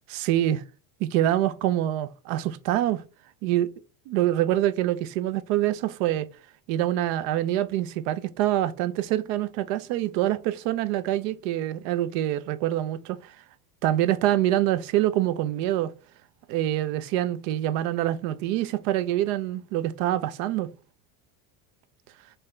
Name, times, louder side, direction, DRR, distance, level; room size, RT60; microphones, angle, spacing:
voice 1, 0.1-0.6 1.0-3.0 3.4-3.7 4.1-6.3 6.7-13.3 13.8-15.9 16.5-20.7, right 13 dB, 65° right, 0.5 m, -25 dB
5.4 x 2.7 x 3.3 m
cardioid pair, 180°, 42 cm